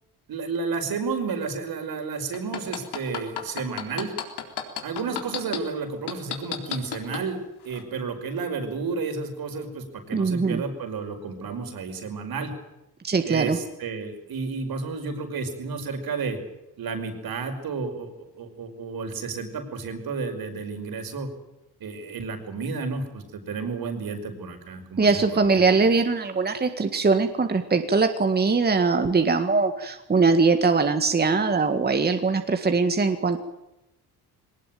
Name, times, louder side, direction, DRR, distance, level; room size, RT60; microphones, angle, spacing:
voice 1, 0.3-4.1 4.8-12.5 13.3-16.4 16.8-21.3 21.8-25.8, right 4 dB, 60° right, 6 dB, 5.5 m, -32 dB
sound 1, 2.3-5.6 6.1-7.2 7.7-7.8, left 10 dB, 75° left, 4.0 m, -30 dB
voice 2, 10.1-10.6 13.0-13.6 25.0-33.4, right 4 dB, 25° right, 7 dB, 1.8 m, -21 dB
22.5 x 19.5 x 9.2 m, 0.92 s
cardioid pair, 135°, 40 cm